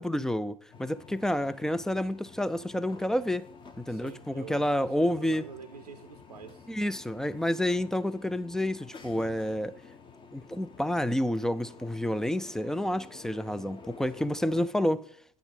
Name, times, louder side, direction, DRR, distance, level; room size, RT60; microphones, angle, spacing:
voice 1, 0.0-3.5 3.8-5.4 6.7-9.7 10.3-15.0, left 1 dB, 5° left, 0.4 m, -29 dB
sound 1, 0.7-14.7, left 5 dB, 25° left, 0.9 m, -51 dB
voice 2, 3.9-6.7, right 7 dB, 90° right, 0.6 m, -46 dB
9.6 x 5.8 x 5.2 m
hypercardioid pair, 80°, 19 cm